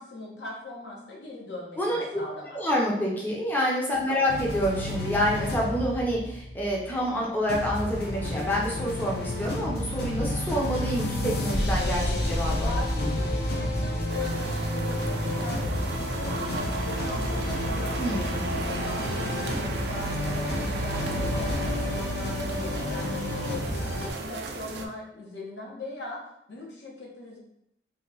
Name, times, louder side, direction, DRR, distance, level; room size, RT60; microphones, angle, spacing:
voice 1, 0.0-2.6 3.9-4.1 12.6-27.4, left 2 dB, 75° left, -3 dB, 0.9 m, -40 dB
voice 2, 2.5-13.1 18.0-18.4, equal, 10° left, -4 dB, 0.6 m, -28 dB
sound 1, 4.3-7.1 7.5-24.1, left 1 dB, 60° left, 0.5 m, -30 dB
sound 2, 14.1-24.9, right 3 dB, 65° right, 0.4 m, -36 dB
2.9 x 2.2 x 3.7 m, 0.76 s
head